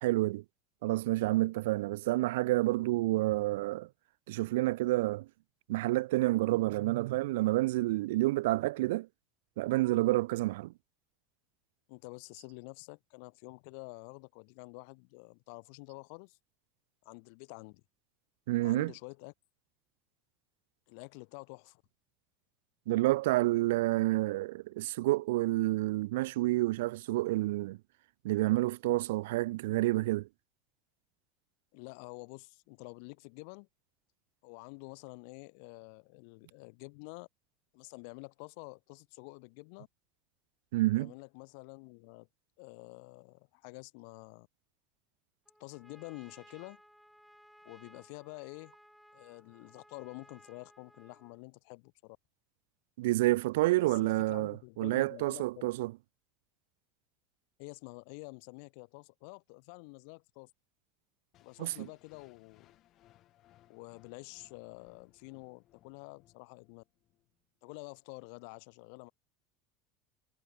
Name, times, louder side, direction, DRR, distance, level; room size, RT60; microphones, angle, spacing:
voice 1, 0.0-0.4 0.8-3.9 4.3-5.3 5.7-9.1 9.6-10.7 18.5-18.9 22.9-27.8 28.2-30.3 40.7-41.1 53.0-56.0 61.6-61.9, right 18 dB, 75° right, 0.8 m, -29 dB
voice 2, 11.9-16.4 17.0-17.8 18.6-19.3 20.9-21.8 31.7-33.7 34.4-37.3 37.7-39.9 40.9-42.3 42.6-44.5 45.6-46.8 47.6-48.7 49.1-52.2 53.8-55.7 57.6-60.5 61.4-62.7 63.7-66.8 67.6-69.1, left 36 dB, 70° left, 1.6 m, -48 dB
Trumpet, 45.5-51.4, equal, ahead, 4.0 m, -60 dB
sound 1, 61.3-67.3, left 14 dB, 50° left, 6.9 m, -65 dB
hypercardioid pair, 90°, 0 cm